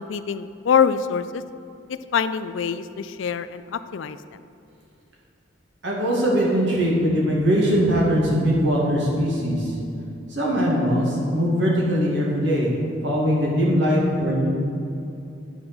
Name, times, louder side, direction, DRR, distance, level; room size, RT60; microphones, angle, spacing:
voice 1, 0.0-1.4 1.9-4.2, left 7 dB, 75° left, 13 dB, 0.4 m, -24 dB
voice 2, 5.8-9.8 10.3-12.7 13.0-14.5, equal, 65° right, -4 dB, 2.1 m, -21 dB
9.6 x 5.1 x 6.1 m, 2.7 s
head